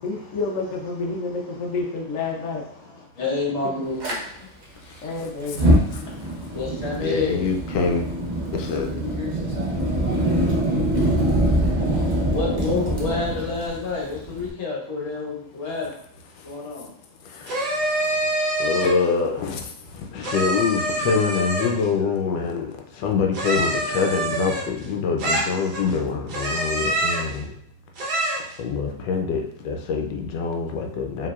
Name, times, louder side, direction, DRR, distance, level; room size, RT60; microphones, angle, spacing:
voice 1, 0.0-2.6 5.0-5.7 11.8-12.6, left 3 dB, 60° left, -1 dB, 0.9 m, -30 dB
voice 2, 2.7-4.5 6.0-7.5 11.6-15.9 16.4-16.9 21.1-21.2, left 3 dB, 45° left, -3 dB, 1.3 m, -29 dB
Fire, 4.0-4.2 5.4-14.5, right 1 dB, 45° right, 0.5 m, -23 dB
voice 3, 4.8-5.6 7.0-8.1 8.5-8.9 16.3-16.5 17.2-18.3 18.6-27.6 28.6-31.3, left 5 dB, 85° left, 2 dB, 1.3 m, -25 dB
sound 1, 17.5-19.1 20.2-21.9 23.3-24.9 25.2-25.9 26.3-27.3 28.0-28.5, right 1 dB, 70° right, 1.5 m, -25 dB
4.7 x 3.4 x 2.4 m, 0.68 s
omnidirectional pair, 1.9 m